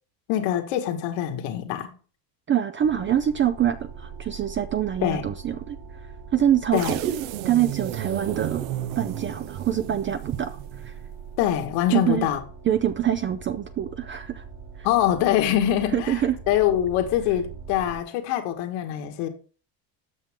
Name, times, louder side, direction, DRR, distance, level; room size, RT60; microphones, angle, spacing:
voice 1, 0.3-1.9 5.0-5.3 6.7-7.0 11.4-12.4 14.8-19.3, left 11 dB, 80° left, 2.0 m, -24 dB
voice 2, 2.5-5.8 6.3-7.1 7.4-8.7 9.0-11.0 11.9-12.3 12.7-14.4 14.8-14.9 15.9-16.4, right 10 dB, 25° right, 0.5 m, -25 dB
sound 1, 2.8-18.0, right 6 dB, 60° right, 4.6 m, -42 dB
sound 2, 6.7-11.0, right 12 dB, 80° right, 1.0 m, -33 dB
13.0 x 7.5 x 3.8 m
cardioid pair, 135°, 49 cm